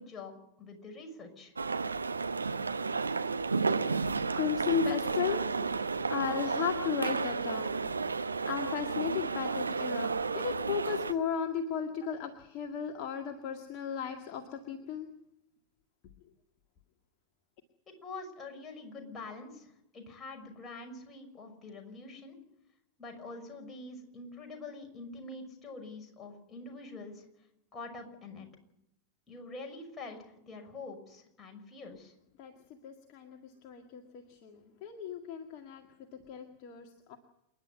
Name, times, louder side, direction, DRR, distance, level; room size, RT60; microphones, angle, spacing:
voice 1, 0.0-1.5 18.0-22.4 23.0-27.3 27.7-28.5 29.3-32.1, left 3 dB, 20° left, 2 dB, 6.2 m, -45 dB
sound 1, 1.6-11.1, right 4 dB, 75° right, 0.9 m, -32 dB
voice 2, 4.3-15.1 32.4-32.5 32.8-35.8 36.1-37.2, left 7 dB, 40° left, 4 dB, 2.0 m, -35 dB
28.5 x 11.0 x 9.4 m, 0.82 s
figure-of-eight pair, 90°, 0 cm